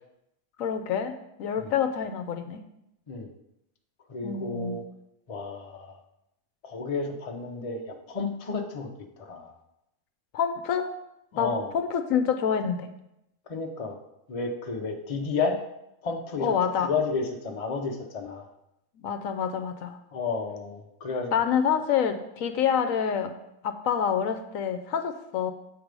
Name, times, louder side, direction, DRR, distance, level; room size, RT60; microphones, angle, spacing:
voice 1, 0.6-1.1 1.4-2.6 4.2-4.8 10.3-10.9 11.3-12.9 16.4-16.9 19.0-20.0 21.3-23.3 23.6-25.5, left 7 dB, 75° left, 7 dB, 1.0 m, -27 dB
voice 2, 4.1-4.8 5.3-6.0 6.6-8.9 9.2-9.5 11.3-11.7 13.5-14.0 14.3-15.6 16.0-16.5 16.8-18.5 20.1-21.3, left 4 dB, 30° left, 2 dB, 0.7 m, -31 dB
8.1 x 4.7 x 5.2 m, 0.85 s
omnidirectional pair, 1.4 m